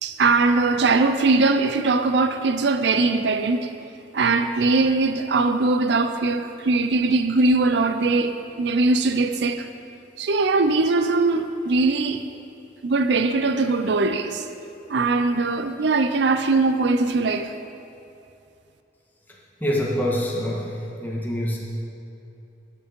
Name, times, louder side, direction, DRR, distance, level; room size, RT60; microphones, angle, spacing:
voice 1, 0.0-3.7 4.1-9.7 10.2-12.3 12.8-14.5 14.9-17.5, right 3 dB, 60° right, 9 dB, 0.5 m, -21 dB
voice 2, 19.6-20.7 21.0-21.6, equal, 10° left, -4 dB, 1.6 m, -25 dB
12.0 x 7.4 x 5.3 m, 2.8 s
head